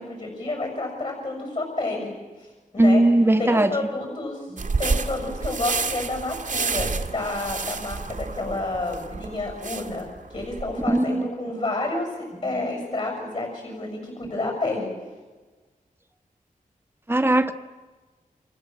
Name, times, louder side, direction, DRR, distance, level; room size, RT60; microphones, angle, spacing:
voice 1, 0.0-2.1 2.4-2.5 2.7-3.0 3.4-4.5 4.8-14.9, left 2 dB, 45° left, 6.6 m, -30 dB
voice 2, 2.8-3.7 4.5-4.6 10.9-11.5 17.1-17.5, right 1 dB, 15° right, 1.4 m, -19 dB
sound 1, 4.6-11.0, right 4 dB, 65° right, 1.7 m, -30 dB
29.5 x 26.5 x 7.6 m
wide cardioid pair, 115°, 14 cm